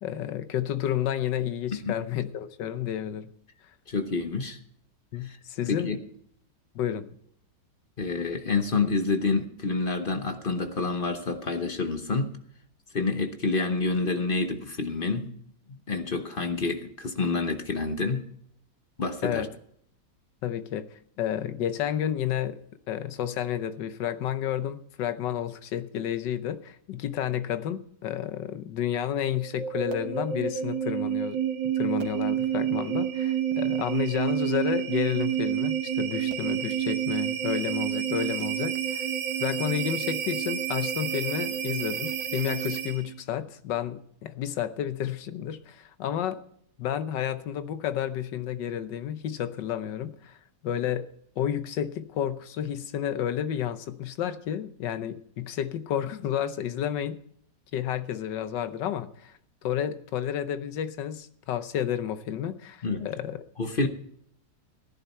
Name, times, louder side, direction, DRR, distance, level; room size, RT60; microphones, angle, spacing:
voice 1, 0.0-3.3 5.1-6.0 6.7-7.1 19.2-19.5 20.4-22.6 22.9-31.4 31.8-39.1 39.4-46.4 46.8-50.4 50.6-51.1 51.4-57.2 57.7-59.3 59.6-63.4, left 10 dB, 80° left, 1.5 m, -31 dB
voice 2, 3.9-4.6 5.2-5.4 5.7-6.0 8.0-12.3 12.9-15.3 15.7-18.3 19.0-19.5 62.8-63.1 63.6-63.9, left 3 dB, 40° left, 0.9 m, -28 dB
sound 1, 29.2-43.2, right 9 dB, 85° right, 2.0 m, -29 dB
16.0 x 11.0 x 4.3 m
omnidirectional pair, 1.9 m